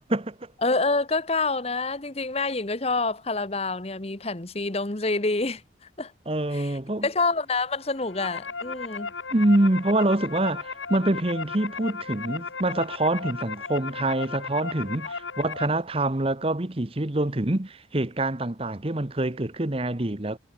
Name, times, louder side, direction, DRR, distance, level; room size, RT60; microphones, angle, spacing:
voice 1, 0.1-0.5 6.3-7.1 9.3-20.4, right 1 dB, 30° right, 1.1 m, -25 dB
voice 2, 0.6-5.6 6.0-6.1 6.5-9.1, left 3 dB, 35° left, 1.3 m, -27 dB
sound 1, 7.8-15.7, left 4 dB, 90° left, 2.5 m, -35 dB
head